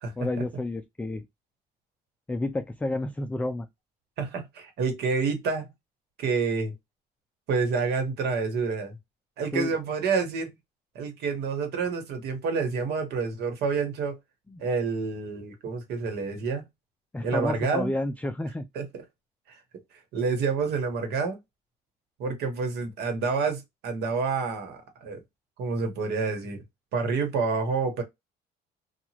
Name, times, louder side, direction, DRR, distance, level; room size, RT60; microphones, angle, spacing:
voice 1, 0.2-1.2 2.3-3.7 9.5-9.7 14.5-14.6 17.1-18.7, left 2 dB, 10° left, 0.3 m, -30 dB
voice 2, 4.2-5.7 6.2-6.7 7.5-8.9 9.4-10.5 10.9-14.2 14.6-16.6 17.2-17.9 18.7-19.0 19.5-19.6 20.1-21.4 22.2-25.2 25.6-26.6 26.9-28.0, right 4 dB, 75° right, 1.2 m, -28 dB
2.9 x 2.4 x 2.8 m
cardioid pair, 110°, 17 cm